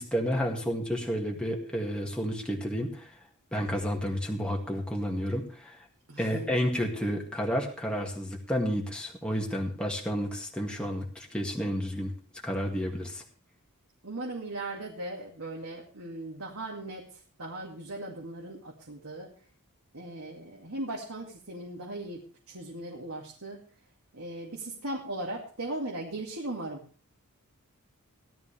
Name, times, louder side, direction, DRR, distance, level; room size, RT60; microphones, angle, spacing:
voice 1, 0.0-3.1 3.5-5.8 6.2-12.1 12.4-13.2, equal, 5° left, 0 dB, 2.0 m, -31 dB
voice 2, 6.1-6.4 14.0-19.3 19.9-23.6 24.1-26.8, right 2 dB, 65° right, -2 dB, 2.4 m, -38 dB
17.0 x 12.0 x 3.4 m, 0.39 s
head